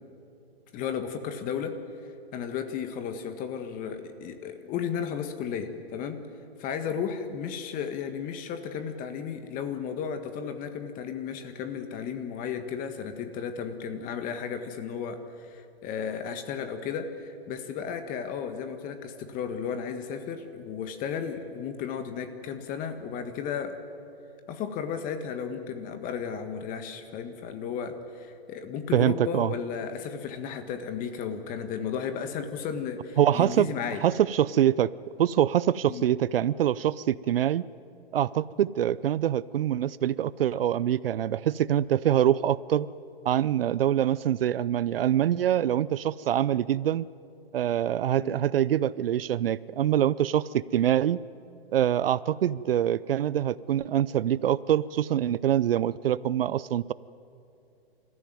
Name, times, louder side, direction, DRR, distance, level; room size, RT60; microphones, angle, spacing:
voice 1, 0.7-1.8 2.3-6.2 6.6-23.8 24.5-34.0 35.9-36.1 48.2-48.4, left 7 dB, 25° left, 8 dB, 1.7 m, -34 dB
voice 2, 28.9-29.5 33.2-33.7 34.0-34.9 35.2-37.6 38.1-42.9 43.3-47.1 47.5-51.2 51.7-56.9, right 11 dB, 65° right, 19 dB, 0.6 m, -24 dB
27.5 x 14.5 x 9.3 m, 2.7 s
hypercardioid pair, 130°, 31 cm